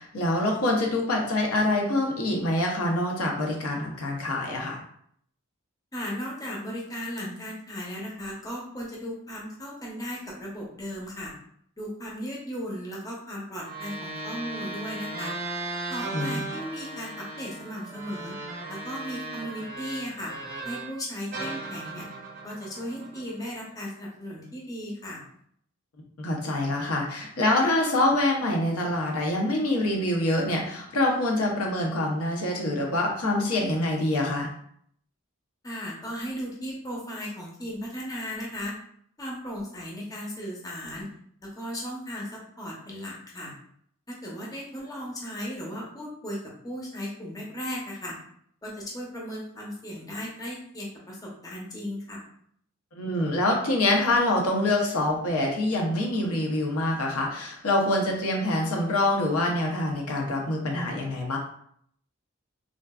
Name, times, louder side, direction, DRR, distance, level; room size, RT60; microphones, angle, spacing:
voice 1, 0.0-4.8 16.1-16.4 26.2-34.5 53.0-61.4, left 1 dB, 90° left, 0 dB, 0.7 m, -25 dB
voice 2, 5.9-11.3 11.8-15.3 15.9-18.4 18.7-20.3 20.6-22.1 22.4-25.2 35.6-38.7 39.2-41.1 41.4-43.5 44.1-48.1 48.6-52.2, equal, 15° left, -4 dB, 0.6 m, -36 dB
sound 1, 13.6-21.0 21.3-23.7, right 2 dB, 40° right, 0.5 m, -37 dB
3.7 x 2.4 x 2.3 m, 0.66 s
head